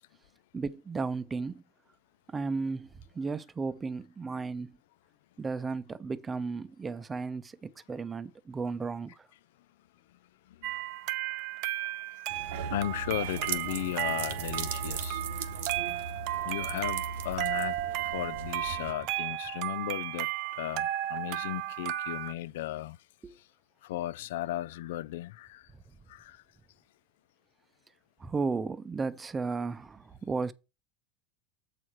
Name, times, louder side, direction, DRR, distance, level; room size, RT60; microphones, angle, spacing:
voice 1, 0.5-1.6 2.3-2.9 3.1-4.7 5.4-9.3 23.2-23.4 28.2-30.5, right 4 dB, 20° right, 0.6 m, -34 dB
sound 1, 10.6-22.3, right 14 dB, 60° right, 0.6 m, -34 dB
sound 2, 12.3-18.9, right 6 dB, 85° right, 1.1 m, -38 dB
voice 2, 12.7-15.5 15.9-16.1 16.4-23.0 23.8-25.6 26.1-26.4, left 14 dB, 85° left, 0.3 m, -36 dB
7.5 x 4.8 x 5.8 m
supercardioid pair, 125°, 0 cm